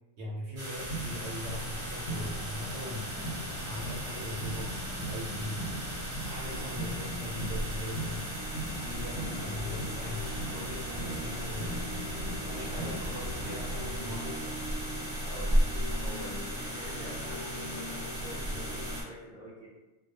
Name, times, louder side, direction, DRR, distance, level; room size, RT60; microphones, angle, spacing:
voice 1, 0.2-3.1 3.7-5.6 6.3-8.2 8.8-12.0 12.4-14.3, left 1 dB, 65° right, -3 dB, 0.8 m, -40 dB
sound 1, 0.6-19.0, right 1 dB, 30° right, 0.7 m, -40 dB
sound 2, 0.7-14.0, equal, 70° left, 0.8 m, -39 dB
sound 3, 1.1-19.0, equal, 40° left, 0.8 m, -37 dB
voice 2, 9.3-9.6 12.4-13.2 15.2-19.7, equal, 5° right, -6 dB, 0.4 m, -46 dB
2.2 x 2.1 x 2.8 m, 1.1 s
omnidirectional pair, 1.3 m